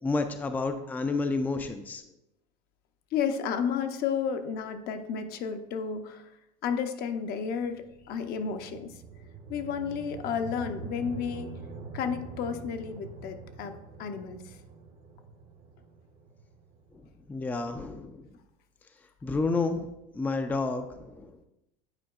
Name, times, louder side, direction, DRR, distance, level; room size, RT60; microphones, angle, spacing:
voice 1, 0.0-2.0 17.3-18.2 19.2-19.9 20.1-21.3, left 3 dB, 10° left, 7 dB, 0.4 m, -30 dB
voice 2, 3.1-6.3 6.6-9.0 9.5-11.5 11.9-13.7 14.0-14.6, left 7 dB, 50° left, 7 dB, 0.7 m, -32 dB
sound 1, 7.5-17.8, right 4 dB, 55° right, 1.1 m, -45 dB
9.0 x 4.5 x 2.4 m, 0.86 s
supercardioid pair, 110°, 21 cm